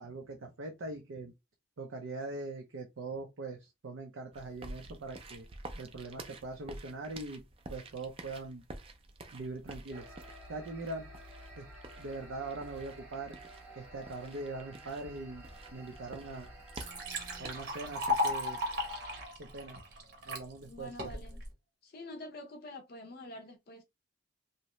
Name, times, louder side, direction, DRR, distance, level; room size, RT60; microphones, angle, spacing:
voice 1, 0.0-1.3 1.8-5.5 5.7-7.4 7.7-8.6 9.3-10.0 10.5-11.1 11.6-11.7 12.0-13.3 13.8-15.4 15.7-16.5 17.4-18.6 19.4-19.8 20.3-21.1, right 2 dB, 80° right, 0.5 m, -42 dB
sound 1, 4.3-18.1, right 2 dB, 30° right, 0.4 m, -50 dB
sound 2, 9.9-19.2, right 1 dB, 10° right, 0.8 m, -52 dB
Liquid, 15.9-16.0 16.4-20.4 21.0-21.5, left 2 dB, 55° right, 0.8 m, -35 dB
voice 2, 20.7-21.4 21.8-23.8, left 1 dB, 50° left, 0.5 m, -46 dB
2.7 x 2.1 x 2.9 m
head